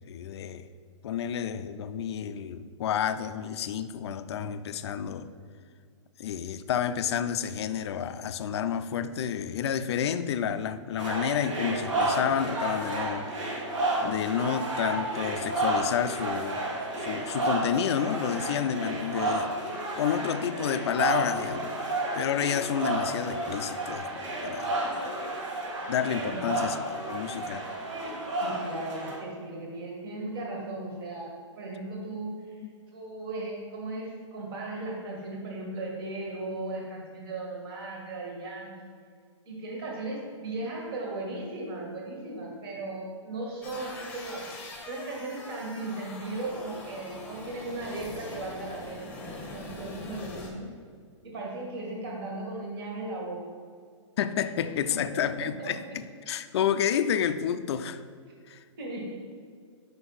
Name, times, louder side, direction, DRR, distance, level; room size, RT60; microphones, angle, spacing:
voice 1, 0.1-0.6 1.0-5.3 6.2-13.3 14.0-16.6 17.0-19.5 20.0-21.7 22.1-24.7 25.9-27.7 54.2-58.0 58.5-58.6, left 8 dB, 60° left, 12 dB, 0.4 m, -30 dB
sound 1, 11.0-29.2, right 1 dB, 80° right, 1.7 m, -31 dB
voice 2, 26.3-26.7 28.4-32.4 32.9-38.7 39.4-44.4 44.9-50.7 51.2-53.4 54.5-54.6 54.9-56.0 58.8-59.2, right 2 dB, 50° right, -1 dB, 1.8 m, -37 dB
sound 2, 43.6-50.5, left 2 dB, 10° left, 1.0 m, -42 dB
5.9 x 5.3 x 4.0 m, 2.1 s
hypercardioid pair, 155°, 16 cm